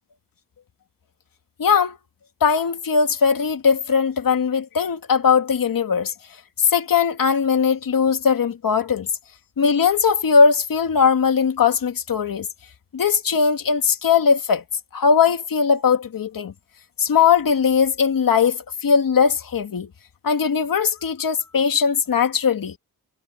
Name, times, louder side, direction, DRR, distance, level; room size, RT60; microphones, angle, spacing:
voice 1, 1.6-2.0 2.4-6.1 6.6-9.1 9.6-12.5 12.9-14.6 14.9-16.5 17.0-19.9 20.2-22.8, left 6 dB, 65° left, 2.4 m, -19 dB
wide cardioid pair, 115°, 37 cm